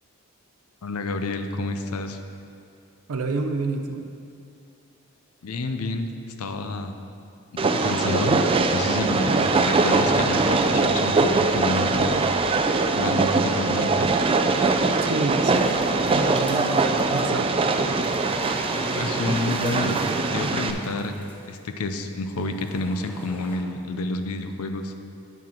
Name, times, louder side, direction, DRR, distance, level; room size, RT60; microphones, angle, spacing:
voice 1, 0.8-2.2 5.4-6.9 7.6-8.4 8.7-12.3 12.9-14.1 16.6-16.8 18.9-20.0 20.3-21.1 21.5-24.9, left 2 dB, 85° left, 7 dB, 0.6 m, -29 dB
voice 2, 3.1-4.0 15.0-17.6, right 3 dB, 85° right, 5 dB, 0.5 m, -29 dB
Train, 7.6-20.7, right 3 dB, 25° right, 0.3 m, -22 dB
sound 1, 15.5-17.4 17.7-21.6 22.3-23.6, right 1 dB, 5° left, 0.8 m, -39 dB
9.2 x 6.0 x 4.4 m, 2.5 s
head